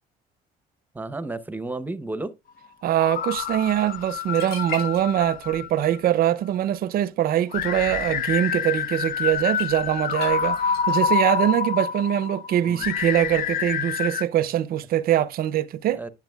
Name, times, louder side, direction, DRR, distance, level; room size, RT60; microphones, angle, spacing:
voice 1, 0.9-2.3 12.6-12.9 15.9-16.1, right 2 dB, 10° right, 0.8 m, -32 dB
voice 2, 2.8-16.0, right 11 dB, 60° right, 0.6 m, -23 dB
sound 1, 3.0-6.1 7.5-14.2, left 7 dB, 55° left, 0.7 m, -27 dB
sound 2, 4.1-4.2 4.3-5.4 5.7-6.1 7.4-7.7 9.5-9.7 10.2-11.2, left 6 dB, 75° left, 5.3 m, -38 dB
10.5 x 6.8 x 2.3 m
cardioid pair, 110°, 17 cm